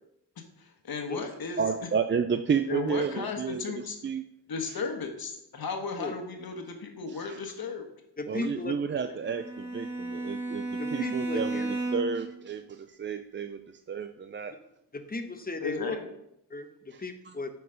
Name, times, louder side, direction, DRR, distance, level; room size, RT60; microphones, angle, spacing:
voice 1, 0.6-1.7 2.7-4.0 4.5-7.8 15.6-16.0, left 5 dB, 60° left, 4 dB, 1.6 m, -35 dB
voice 2, 1.6-3.6 4.0-4.2 7.2-7.3 8.3-10.6 10.9-13.6 13.9-14.5 17.3-17.4, right 6 dB, 30° right, 8 dB, 0.4 m, -31 dB
voice 3, 8.2-8.7 10.8-11.7 14.9-16.0 16.5-17.5, left 2 dB, 20° left, 8 dB, 1.0 m, -36 dB
Bowed string instrument, 9.2-12.3, right 2 dB, 5° right, 2.3 m, -33 dB
8.1 x 4.6 x 5.0 m, 0.79 s
cardioid pair, 65°, 41 cm